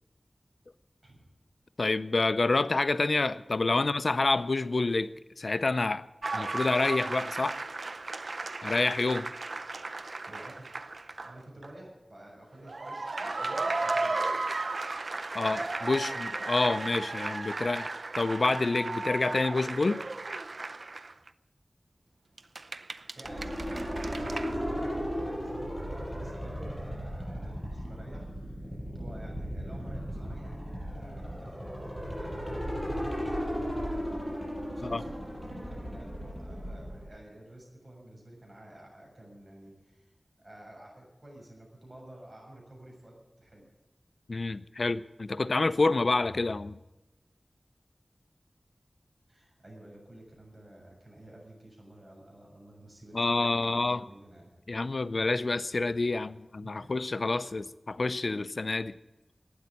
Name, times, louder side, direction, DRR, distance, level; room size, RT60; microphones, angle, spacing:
voice 1, 1.8-6.0 6.3-7.6 8.6-9.3 15.3-20.0 34.8-35.0 44.3-46.8 53.1-54.0 54.7-58.9, left 3 dB, 65° left, 14 dB, 0.5 m, -28 dB
sound 1, 6.2-11.4 11.6-11.7 12.6-21.3 22.4-24.5, right 3 dB, 65° right, 0.5 m, -35 dB
voice 2, 10.2-10.7 11.2-14.2 23.1-28.5 28.9-34.2 34.7-40.1 40.4-43.6 49.3-54.5 56.6-56.9, right 1 dB, 35° right, -2 dB, 6.9 m, -51 dB
sound 2, 23.2-37.0, equal, 5° right, 6.1 m, -36 dB
12.0 x 9.4 x 9.7 m, 1.0 s
wide cardioid pair, 75°, 0 cm